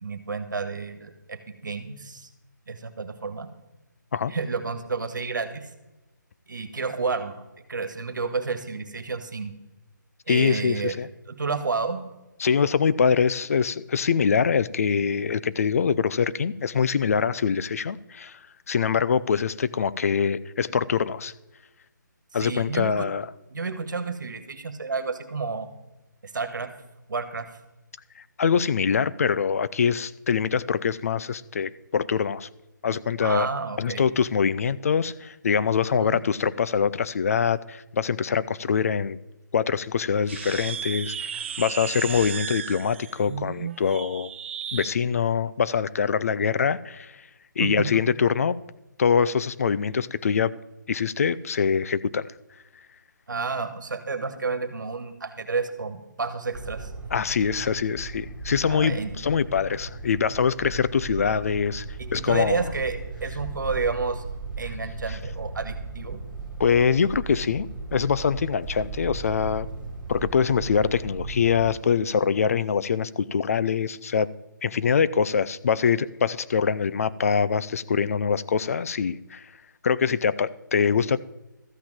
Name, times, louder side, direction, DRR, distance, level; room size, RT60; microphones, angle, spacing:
voice 1, 0.0-2.3 2.7-3.5 4.3-5.7 6.5-7.4 7.7-9.5 10.3-11.0 11.3-12.0 22.3-23.1 23.5-25.7 26.2-26.7 27.1-27.5 33.2-34.0 35.8-36.2 47.6-48.0 53.3-56.9 58.7-59.1 62.0-64.2 64.6-66.2, right 4 dB, 70° right, 1.7 m, -30 dB
voice 2, 10.3-11.1 12.4-18.4 18.7-21.3 22.3-23.3 28.2-32.5 32.8-33.5 33.8-39.2 39.5-44.3 44.7-47.2 47.6-48.6 49.0-50.5 50.9-52.3 57.1-61.9 62.1-62.6 65.1-65.2 66.6-69.7 70.1-74.3 74.6-79.5 79.8-81.2, left 6 dB, 45° left, 0.4 m, -24 dB
sound 1, 40.2-44.9, right 8 dB, 35° right, 0.4 m, -34 dB
sound 2, 56.5-71.7, right 3 dB, 5° right, 2.5 m, -37 dB
13.5 x 6.0 x 7.4 m
figure-of-eight pair, 155°, 11 cm